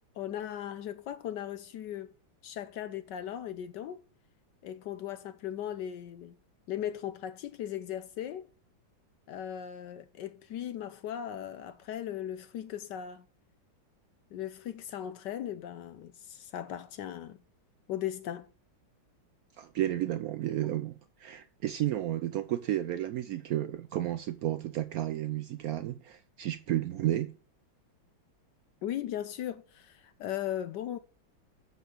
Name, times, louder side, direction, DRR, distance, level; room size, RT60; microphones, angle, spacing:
voice 1, 0.2-2.1 2.4-4.0 4.6-6.4 6.7-8.4 9.3-13.3 14.3-17.4 17.9-18.5 28.8-31.0, left 11 dB, 75° left, 1.1 m, -38 dB
voice 2, 19.6-27.3, right 13 dB, 85° right, 0.7 m, -32 dB
8.2 x 4.6 x 6.1 m
omnidirectional pair, 2.2 m